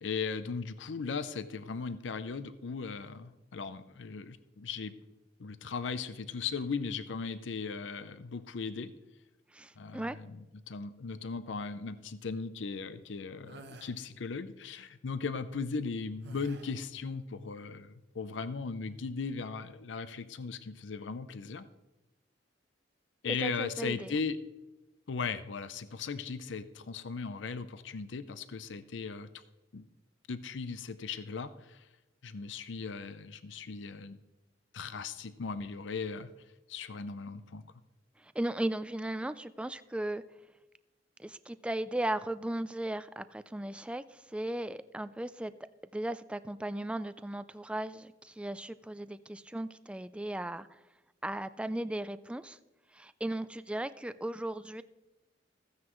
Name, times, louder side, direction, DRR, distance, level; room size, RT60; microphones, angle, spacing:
voice 1, 0.0-4.9 5.4-8.9 9.8-21.7 23.2-24.4 25.1-29.4 29.7-29.9 30.3-31.9 32.2-34.2 34.7-36.3 36.7-37.6, left 5 dB, 75° left, 13 dB, 0.5 m, -38 dB
voice 2, 9.5-10.2 23.4-24.1 38.2-40.2 41.2-44.0 44.3-45.5 45.9-50.7 51.2-52.6 52.9-54.8, right 1 dB, 5° right, 14 dB, 0.3 m, -36 dB
sound 1, 13.5-14.0 16.2-16.9, right 2 dB, 60° right, 0.9 m, -49 dB
15.0 x 9.5 x 3.1 m, 1.0 s
head